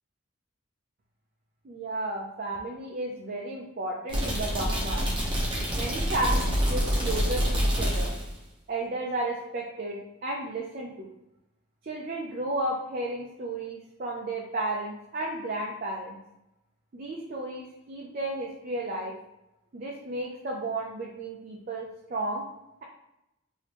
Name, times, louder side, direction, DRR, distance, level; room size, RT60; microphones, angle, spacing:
voice 1, 1.6-5.1 5.7-8.1 8.7-11.1 11.8-16.2 16.9-19.1 19.7-22.5, right 2 dB, 45° right, -2 dB, 0.4 m, -33 dB
sound 1, 4.1-8.3, equal, 20° right, 0.8 m, -27 dB
3.4 x 2.7 x 2.9 m, 0.88 s
head